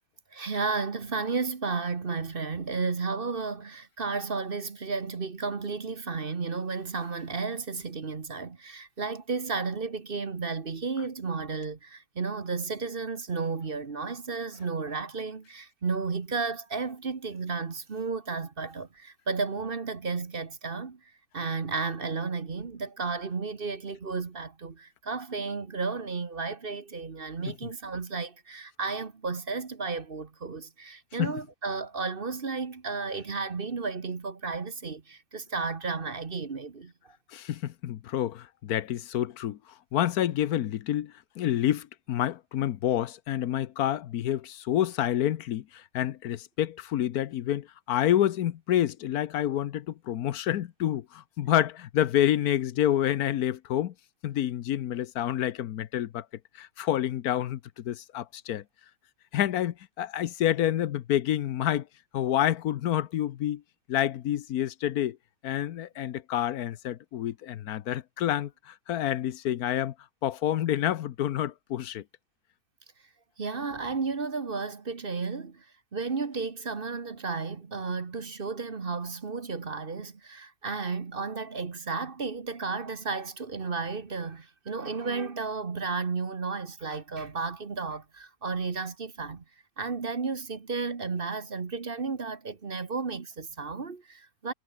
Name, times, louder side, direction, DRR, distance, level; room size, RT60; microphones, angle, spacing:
voice 1, 0.3-21.0 21.3-37.2 73.4-75.7 75.9-89.4 89.8-94.5, right 4 dB, 40° right, 1.4 m, -33 dB
voice 2, 37.3-39.6 39.9-53.9 54.2-56.3 56.5-58.6 59.3-61.9 62.1-63.6 63.9-65.2 65.4-69.9 70.2-72.0, left 11 dB, 80° left, 1.3 m, -28 dB
omnidirectional pair, 1.6 m